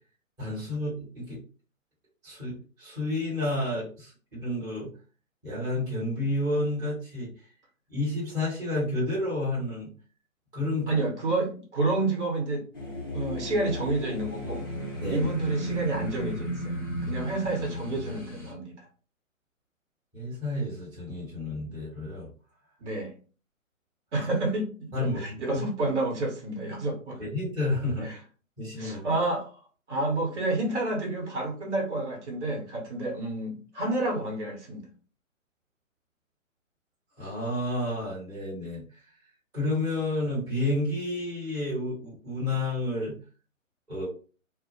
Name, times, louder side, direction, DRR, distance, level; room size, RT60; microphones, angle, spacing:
voice 1, 0.4-1.4 2.2-4.9 5.4-7.3 7.9-9.9 10.5-10.9 15.0-15.3 20.1-22.3 24.9-25.4 27.2-28.1 28.6-29.2 37.2-38.8 39.5-43.1 43.9-44.1, left 1 dB, 10° right, -9 dB, 0.9 m, -30 dB
voice 2, 10.9-14.6 15.1-18.9 22.8-23.1 24.1-27.2 28.0-28.2 28.8-29.5 29.9-34.8, right 2 dB, 55° right, 0 dB, 1.1 m, -29 dB
sound 1, 12.7-18.5, equal, 20° left, 0.4 m, -34 dB
2.1 x 2.0 x 2.9 m, 0.37 s
figure-of-eight pair, 130°, 41 cm